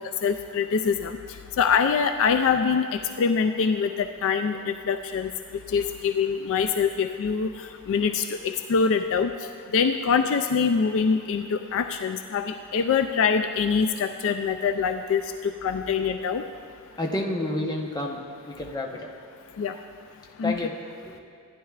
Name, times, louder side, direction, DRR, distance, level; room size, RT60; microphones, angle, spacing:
voice 1, 0.2-1.2 1.6-2.9 3.2-5.3 5.7-7.5 7.9-9.3 9.7-16.4 19.6-19.7 20.4-20.5, left 6 dB, 60° left, 8 dB, 0.3 m, -24 dB
voice 2, 17.0-18.2 18.5-19.1 20.4-20.7 21.1-21.2, left 1 dB, 20° left, 0 dB, 0.9 m, -29 dB
15.0 x 10.0 x 2.4 m, 2.4 s
head